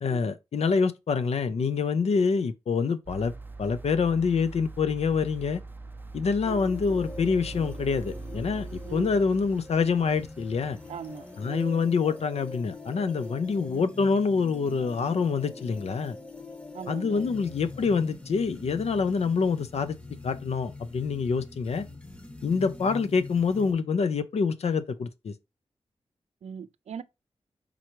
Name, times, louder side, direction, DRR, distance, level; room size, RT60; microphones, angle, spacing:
voice 1, 0.0-3.3 3.6-5.6 6.1-10.8 11.4-16.2 16.9-20.0 20.2-21.9 22.4-25.3, left 5 dB, 75° left, 0.6 m, -26 dB
sound 1, 3.1-11.3 11.7-11.8, right 3 dB, 20° right, 0.5 m, -42 dB
sound 2, 6.5-23.7, left 2 dB, 10° left, 0.9 m, -44 dB
voice 2, 8.9-9.2 10.9-11.8 16.7-17.3 26.4-27.0, right 7 dB, 80° right, 0.4 m, -40 dB
4.5 x 3.8 x 3.0 m
cardioid pair, 70°, 11 cm